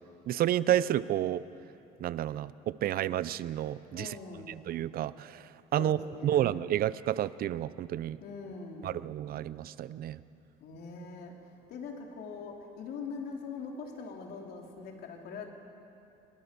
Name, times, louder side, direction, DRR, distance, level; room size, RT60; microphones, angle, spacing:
voice 1, 0.3-1.4 2.0-4.1 4.7-8.2 8.8-10.2, right 12 dB, 60° right, 17 dB, 0.6 m, -30 dB
voice 2, 3.9-4.6 5.8-6.5 8.2-9.1 10.6-15.5, left 4 dB, 70° left, 1 dB, 3.6 m, -42 dB
24.5 x 22.5 x 7.0 m, 2.7 s
cardioid pair, 110°, 17 cm